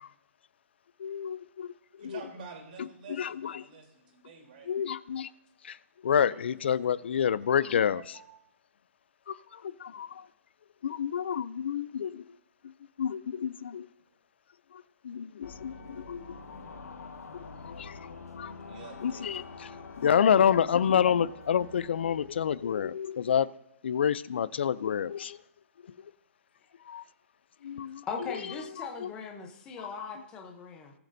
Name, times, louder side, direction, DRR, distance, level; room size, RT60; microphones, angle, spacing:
voice 1, 1.0-1.7 2.0-2.2 3.2-3.5 4.7-5.3 5.6-5.8 6.0-8.0 9.3-10.2 10.8-12.2 13.0-13.9 15.0-16.2 17.6-18.0 18.4-18.5 19.0-19.4 20.0-23.5 23.8-25.4 26.9-27.0 27.6-28.0 29.0-29.1, left 8 dB, 45° left, 19 dB, 0.4 m, -28 dB
voice 2, 2.0-4.7 6.1-7.1 7.9-8.5 14.1-14.2 18.4-19.3, right 5 dB, 35° right, 0 dB, 3.4 m, -49 dB
sound 1, 15.4-22.7, left 4 dB, 85° left, 1.3 m, -46 dB
voice 3, 28.0-30.9, left 5 dB, 10° left, 2 dB, 0.8 m, -39 dB
20.0 x 7.4 x 2.7 m, 0.78 s
hypercardioid pair, 170°, 8 cm